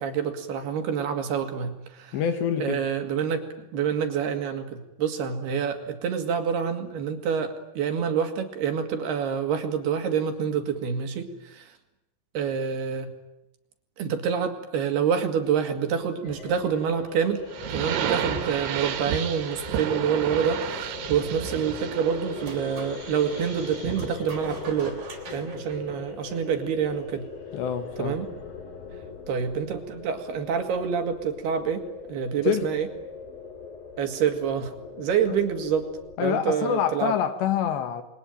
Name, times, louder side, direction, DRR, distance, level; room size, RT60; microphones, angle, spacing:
voice 1, 0.0-2.2 2.6-3.5 3.7-11.7 12.3-13.1 14.0-25.0 25.3-27.3 28.0-28.3 29.3-32.9 34.0-34.7 35.0-35.9 36.2-37.1, right 7 dB, 65° right, 6 dB, 4.1 m, -27 dB
voice 2, 2.1-2.9 27.5-28.2 32.4-32.7 35.3-35.4 36.2-38.0, left 9 dB, 75° left, 9 dB, 4.0 m, -26 dB
sound 1, 16.2-36.2, left 6 dB, 55° left, 4.2 m, -41 dB
sound 2, 17.5-24.2, right 8 dB, 80° right, 4.3 m, -32 dB
sound 3, 22.4-23.0 23.9-26.7, right 3 dB, 45° right, 5.0 m, -43 dB
28.5 x 23.0 x 9.1 m, 0.92 s
omnidirectional pair, 5.2 m